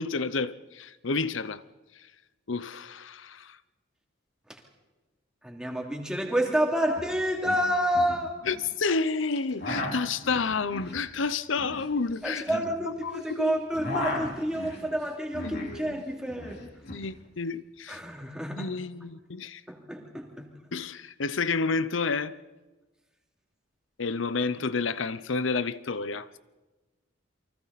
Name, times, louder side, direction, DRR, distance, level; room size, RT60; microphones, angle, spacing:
voice 1, 0.0-1.6 2.5-3.6 8.5-13.6 15.4-16.0 16.9-18.0 18.6-19.6 20.7-22.4 24.0-26.4, left 4 dB, 80° left, 0.8 m, -30 dB
voice 2, 5.4-8.3 12.2-16.6 17.9-18.7 19.7-20.5, equal, 5° right, 3.0 m, -29 dB
sound 1, 6.4-6.5 6.8-7.1 7.4-8.6 9.3-13.3 13.6-15.8 16.1-17.0, left 1 dB, 55° left, 4.1 m, -36 dB
29.5 x 24.0 x 4.2 m
head